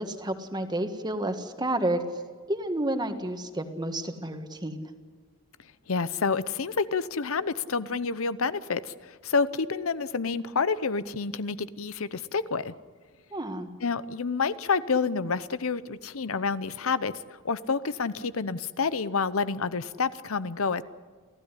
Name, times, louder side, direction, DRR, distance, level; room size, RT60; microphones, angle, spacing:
voice 1, 0.0-2.0 2.5-4.9 13.3-13.7, right 1 dB, 20° right, 7 dB, 1.8 m, -30 dB
voice 2, 5.9-12.7 13.8-20.8, left 5 dB, 70° left, 15 dB, 0.8 m, -28 dB
28.5 x 15.5 x 9.9 m, 1.5 s
head